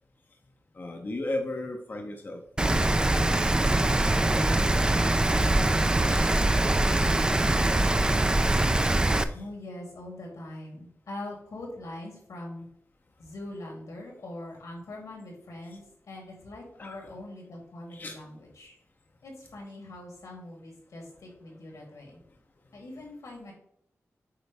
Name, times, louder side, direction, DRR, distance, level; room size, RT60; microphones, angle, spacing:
voice 1, 0.7-2.9 3.2-3.3 3.6-4.7 5.0-6.9 9.3-9.4 16.8-17.1 17.9-18.2, left 2 dB, 35° left, 3 dB, 0.6 m, -38 dB
Rain, 2.6-9.2, right 1 dB, 15° right, 0.4 m, -23 dB
voice 2, 9.3-12.7 13.2-18.8 19.2-22.2 22.7-23.5, left 1 dB, 90° left, -1 dB, 2.9 m, -42 dB
8.1 x 4.5 x 3.3 m, 0.71 s
wide cardioid pair, 120°, 5 cm